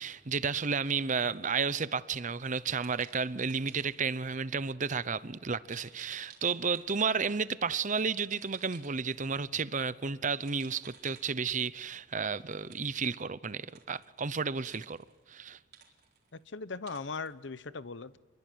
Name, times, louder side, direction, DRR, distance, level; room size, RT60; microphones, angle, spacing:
voice 1, 0.0-15.0 15.3-15.6, right 5 dB, 40° right, 0.8 m, -32 dB
sound 1, 1.1-1.5 2.8-4.2 5.7-7.2 8.1-9.4 10.4-11.8 12.7-13.1 13.6-14.3 14.6-15.4 15.7-16.4 16.9-17.3, right 7 dB, 55° right, 4.1 m, -56 dB
voice 2, 16.3-18.2, left 4 dB, 65° left, 0.9 m, -39 dB
28.0 x 22.0 x 9.4 m
head